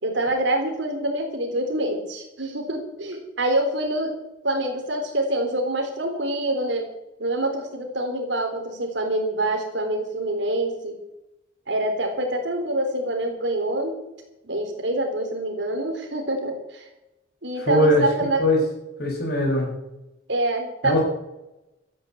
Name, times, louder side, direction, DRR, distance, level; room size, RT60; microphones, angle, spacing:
voice 1, 0.0-4.1 4.4-6.9 7.2-11.0 11.7-14.0 14.4-16.8 17.4-18.4 20.3-21.0, right 1 dB, 75° right, 4 dB, 3.9 m, -26 dB
voice 2, 17.6-18.0 18.4-18.6 19.0-19.7 20.8-21.0, left 1 dB, 55° left, 0 dB, 6.7 m, -20 dB
13.5 x 9.6 x 9.3 m, 0.95 s
head